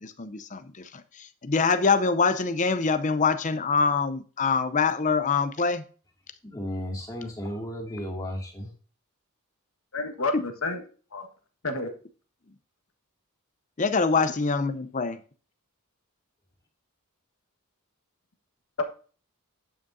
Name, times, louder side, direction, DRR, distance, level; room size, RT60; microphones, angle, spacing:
voice 1, 0.0-5.8 13.8-15.2, left 4 dB, 35° left, 0.6 m, -25 dB
voice 2, 6.4-8.7, left 1 dB, 15° left, 2.4 m, -34 dB
voice 3, 9.9-10.8 11.1-11.3 11.6-11.9, left 2 dB, 65° left, 1.5 m, -30 dB
11.0 x 6.3 x 2.7 m
head